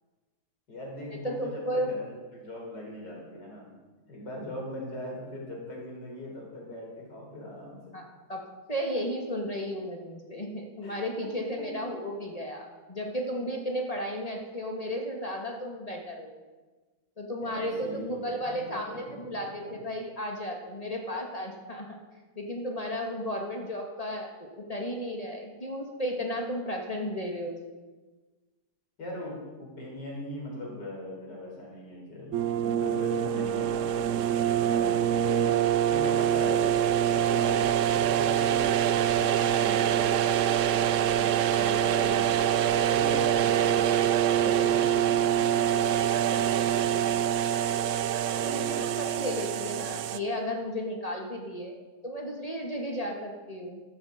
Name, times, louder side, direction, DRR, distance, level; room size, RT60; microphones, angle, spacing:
voice 1, 0.7-3.7 4.1-8.0 10.8-11.7 17.4-19.8 29.0-34.2 34.6-35.2 35.9-36.7 37.1-40.3 40.7-42.4 42.7-44.0 44.3-47.2 48.3-48.9, left 1 dB, 85° left, -2 dB, 4.6 m, -40 dB
voice 2, 1.2-1.9 7.9-8.0 8.3-8.4 8.7-16.3 17.2-21.9 22.4-27.6 48.4-51.7 52.0-53.8, equal, 20° left, 1 dB, 1.9 m, -34 dB
sound 1, 32.3-50.2, right 10 dB, 75° right, 0.7 m, -25 dB
14.0 x 12.5 x 5.1 m, 1.3 s
omnidirectional pair, 1.8 m